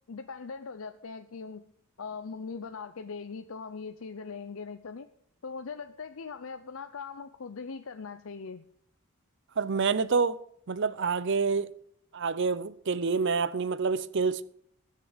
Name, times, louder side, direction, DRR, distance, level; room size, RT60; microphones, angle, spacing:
voice 1, 0.1-1.6 2.0-5.1 5.4-8.6, left 5 dB, 70° left, 0.6 m, -40 dB
voice 2, 9.6-10.4 10.7-11.7 12.1-14.4, right 5 dB, 55° right, 0.6 m, -27 dB
20.0 x 6.7 x 5.0 m
head